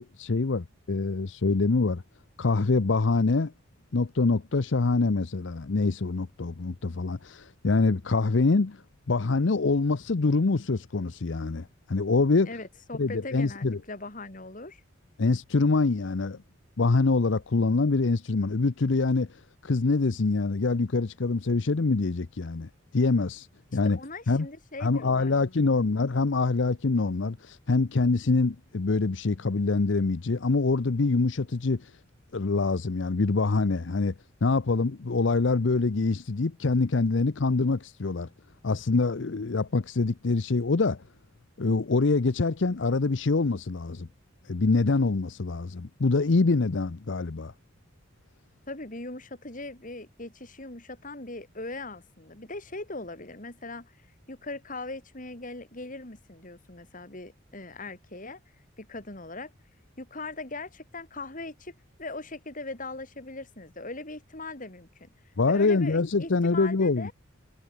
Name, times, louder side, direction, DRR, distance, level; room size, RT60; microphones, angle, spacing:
voice 1, 0.0-2.0 2.4-3.5 3.9-8.8 9.1-12.5 13.0-13.8 15.2-16.4 16.8-23.5 23.7-24.0 24.3-24.5 24.8-31.9 32.3-34.1 34.4-38.3 38.6-41.0 41.6-44.1 44.4-47.5 65.4-67.1, left 3 dB, 65° left, 0.7 m, -25 dB
voice 2, 12.5-14.8 23.7-25.3 25.7-25.8 48.7-53.9 54.3-58.4 58.8-59.5 60.0-65.1 65.5-67.1, left 2 dB, 40° left, 3.6 m, -40 dB
head